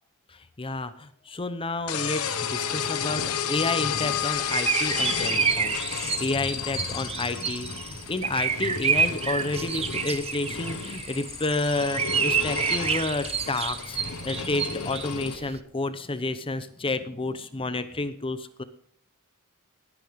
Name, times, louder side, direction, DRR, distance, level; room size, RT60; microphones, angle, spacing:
voice 1, 0.6-14.0 14.2-18.6, left 2 dB, 25° left, 12 dB, 0.8 m, -30 dB
sound 1, 1.9-15.4, left 7 dB, 70° left, 1.2 m, -32 dB
sound 2, 4.0-15.6, right 6 dB, 25° right, 0.6 m, -29 dB
19.0 x 9.5 x 3.6 m, 0.64 s
head